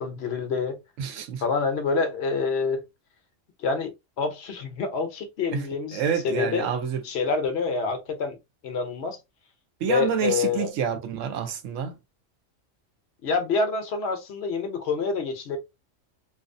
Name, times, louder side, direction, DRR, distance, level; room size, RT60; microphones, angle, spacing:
voice 1, 0.0-0.8 1.4-2.8 3.6-3.9 4.2-6.7 7.0-8.4 8.6-9.2 9.9-10.7 13.2-15.6, left 4 dB, 65° left, 0.8 m, -27 dB
voice 2, 1.0-1.4 5.5-5.7 5.9-7.0 9.8-11.9, right 7 dB, 85° right, 1.0 m, -28 dB
2.6 x 2.3 x 2.5 m
omnidirectional pair, 1.3 m